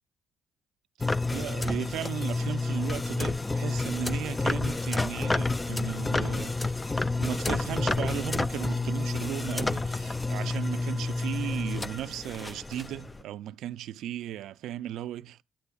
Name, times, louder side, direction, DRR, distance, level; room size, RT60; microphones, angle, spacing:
sound 1, 1.0-13.2, left 3 dB, 20° left, 0.3 m, -29 dB
voice 1, 1.3-15.4, right 12 dB, 85° right, 0.4 m, -36 dB
9.7 x 8.3 x 2.3 m
cardioid pair, 90°, 0 cm